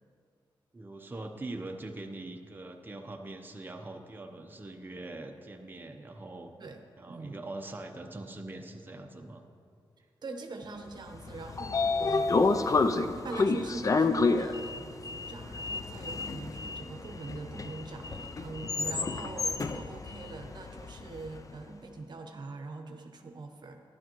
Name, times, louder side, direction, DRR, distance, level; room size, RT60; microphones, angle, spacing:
voice 1, 0.7-6.5 7.0-9.4, right 2 dB, 20° right, 3 dB, 0.8 m, -42 dB
voice 2, 6.6-7.4 10.0-23.8, right 3 dB, 55° right, 5 dB, 0.8 m, -43 dB
Sliding door, 11.1-21.3, left 3 dB, 40° left, 0.5 m, -30 dB
12.0 x 11.0 x 3.0 m, 2.4 s
cardioid pair, 70°, 9 cm